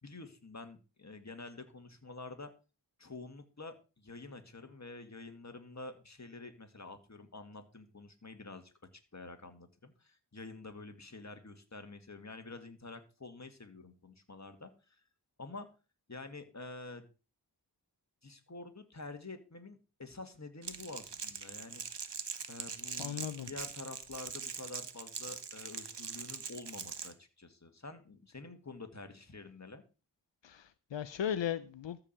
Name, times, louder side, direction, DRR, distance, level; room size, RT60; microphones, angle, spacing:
voice 1, 0.0-2.5 3.0-8.7 9.1-15.0 15.4-15.7 16.1-17.1 18.2-21.8 22.5-23.2 23.5-29.8, left 3 dB, 40° left, 2.1 m, -48 dB
Crackle, 20.6-27.1, right 6 dB, 70° right, 1.3 m, -42 dB
voice 2, 23.0-23.5 30.4-32.1, left 9 dB, 85° left, 0.7 m, -37 dB
13.5 x 4.9 x 7.5 m
wide cardioid pair, 65°, 43 cm